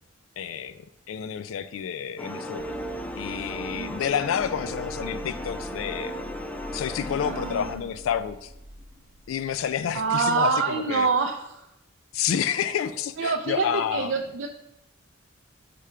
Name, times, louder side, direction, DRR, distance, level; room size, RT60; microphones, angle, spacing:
voice 1, 0.4-2.7 3.2-6.1 6.7-8.5 9.3-11.1 12.1-14.1, left 8 dB, 90° left, 13 dB, 0.3 m, -29 dB
sound 1, 2.2-7.8, equal, 5° left, 0.3 m, -35 dB
sound 2, 2.6-10.0, equal, 50° right, 0.9 m, -44 dB
voice 2, 7.2-7.8 9.9-11.6 13.2-14.5, right 4 dB, 75° right, 3 dB, 0.4 m, -26 dB
5.0 x 3.4 x 5.5 m, 0.82 s
head